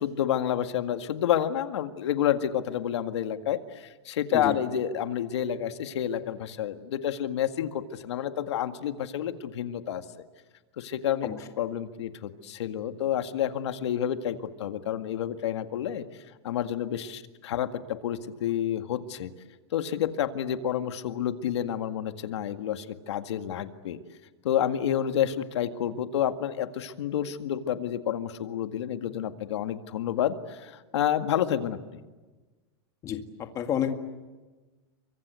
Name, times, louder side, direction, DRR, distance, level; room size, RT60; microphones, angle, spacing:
voice 1, 0.0-10.2 10.8-11.3 11.6-16.0 16.4-19.3 19.7-24.0 24.4-32.0, left 10 dB, 75° left, 8 dB, 1.9 m, -29 dB
voice 2, 33.6-33.9, left 9 dB, 20° left, 6 dB, 1.9 m, -28 dB
30.0 x 24.5 x 8.2 m, 1.2 s
supercardioid pair, 165°, 14 cm